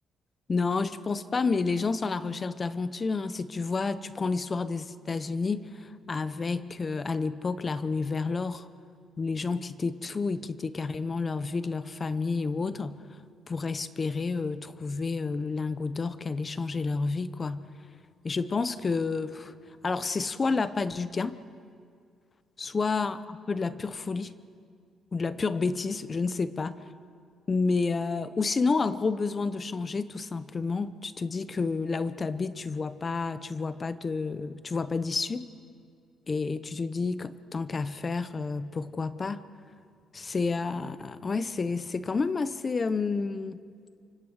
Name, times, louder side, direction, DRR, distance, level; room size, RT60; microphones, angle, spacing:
voice 1, 0.5-8.7 9.2-13.0 13.5-17.7 18.2-19.5 19.8-21.4 22.6-24.3 25.1-26.8 27.5-35.5 36.3-39.4 40.1-43.6, left 4 dB, 35° left, 13 dB, 0.9 m, -30 dB
28.5 x 25.0 x 5.0 m, 2.2 s
cardioid pair, 90°, 0 cm